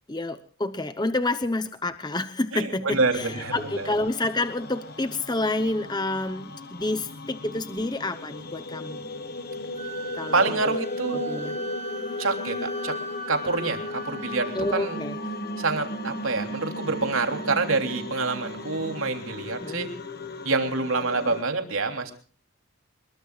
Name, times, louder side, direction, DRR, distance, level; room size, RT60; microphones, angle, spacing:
voice 1, 0.1-9.0 10.1-10.7 11.1-11.6 14.5-15.2 19.6-19.9, left 2 dB, 20° left, 9 dB, 0.9 m, -29 dB
voice 2, 2.5-4.0 10.3-11.5 12.2-13.0 13.3-15.0 15.6-19.9 20.4-22.1, right 3 dB, 75° right, 5 dB, 3.3 m, -27 dB
sound 1, 3.2-21.4, left 2 dB, 45° left, 1.5 m, -36 dB
Wind instrument woodwind instrument, 9.8-14.9, right 4 dB, 35° right, 2.2 m, -41 dB
26.0 x 22.5 x 2.4 m, 0.41 s
head